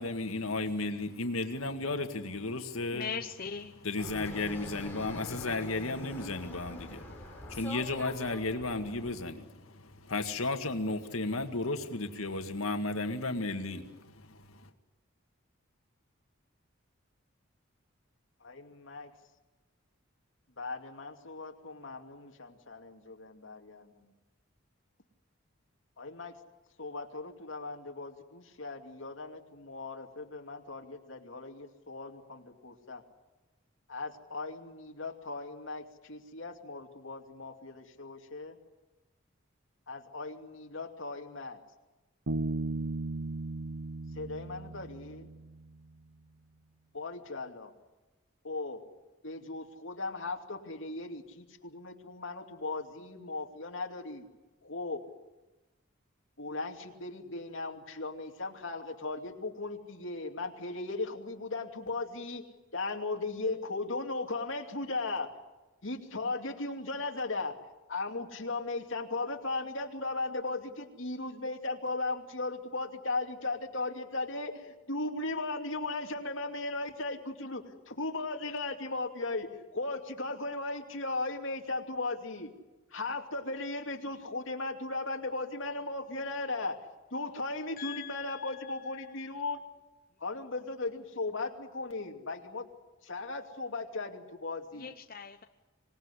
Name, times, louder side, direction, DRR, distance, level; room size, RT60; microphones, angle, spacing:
voice 1, 0.0-3.1 3.8-14.6, left 2 dB, 90° left, 6 dB, 2.0 m, -34 dB
voice 2, 2.9-3.7 87.8-89.0 94.7-95.4, left 6 dB, 45° left, 5 dB, 0.9 m, -41 dB
Fixed-wing aircraft airplane, 4.0-9.1, left 1 dB, 10° left, 4.7 m, -44 dB
voice 3, 18.4-19.1 20.6-24.1 26.0-26.3 26.8-33.0 33.9-38.6 39.9-41.6 44.2-45.3 46.9-47.7 48.4-48.8 49.2-54.3 54.6-55.0 56.4-62.4 62.7-65.3 65.8-67.5 67.9-82.5 82.9-86.8 87.1-89.6 90.2-92.7 93.0-94.9, left 3 dB, 65° left, 3 dB, 2.7 m, -37 dB
Bass guitar, 42.3-45.8, right 2 dB, 80° right, 1.0 m, -36 dB
25.5 x 19.0 x 9.9 m, 1.1 s
head